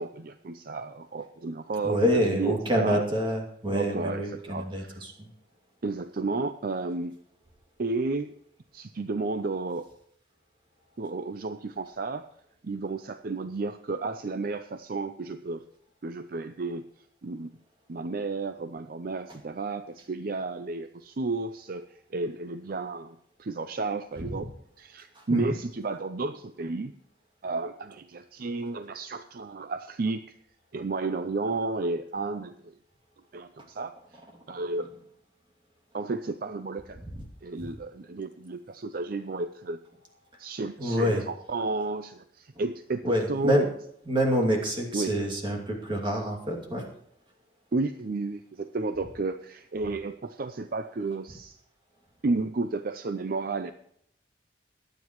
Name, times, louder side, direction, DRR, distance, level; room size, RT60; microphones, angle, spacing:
voice 1, 0.0-3.0 3.7-5.0 5.8-7.1 7.8-8.3 8.7-9.9 11.0-12.2 12.6-15.6 16.0-16.8 17.2-17.5 17.9-24.5 24.8-26.9 27.4-30.3 30.7-32.7 33.3-33.9 34.5-34.9 35.9-37.0 37.4-39.8 40.4-43.7 44.9-45.1 47.7-51.6 52.2-53.7, right 3 dB, 55° right, 9 dB, 0.5 m, -32 dB
voice 2, 1.8-5.3 25.2-25.5 40.8-41.2 43.0-43.7 44.1-46.8, equal, 30° right, 1 dB, 2.5 m, -27 dB
22.0 x 9.3 x 3.1 m, 0.70 s
head